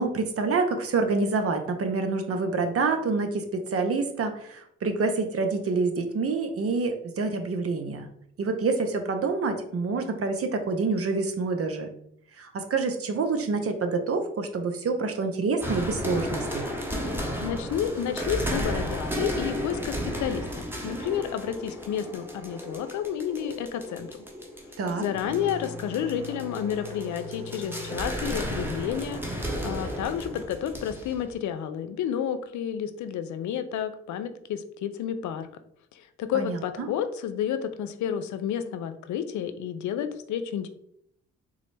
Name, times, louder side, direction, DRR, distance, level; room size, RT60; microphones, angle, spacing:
voice 1, 0.0-8.1 8.4-11.9 12.4-16.7 24.8-25.0 36.3-36.9, right 4 dB, 45° right, 6 dB, 0.7 m, -27 dB
sound 1, 15.6-31.3, equal, 5° right, 0.9 m, -34 dB
voice 2, 17.4-20.4 20.8-24.1 25.0-35.5 35.9-40.7, left 9 dB, 65° left, 10 dB, 0.5 m, -31 dB
sound 2, 25.1-30.4, left 3 dB, 75° right, 1.2 m, -43 dB
3.6 x 2.0 x 3.2 m, 0.72 s
supercardioid pair, 50°, 31 cm